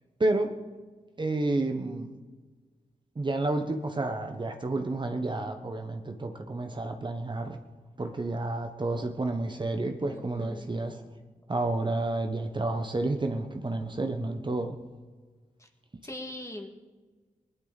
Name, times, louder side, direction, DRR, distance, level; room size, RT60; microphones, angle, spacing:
voice 1, 0.2-0.5 1.2-2.1 3.2-7.6 8.0-11.0 11.5-14.8, right 2 dB, 35° right, 5 dB, 1.0 m, -30 dB
voice 2, 10.1-10.7 15.6-15.7 16.0-16.7, left 1 dB, 20° left, 3 dB, 2.0 m, -41 dB
19.5 x 12.0 x 4.1 m, 1.4 s
wide cardioid pair, 80°, 14 cm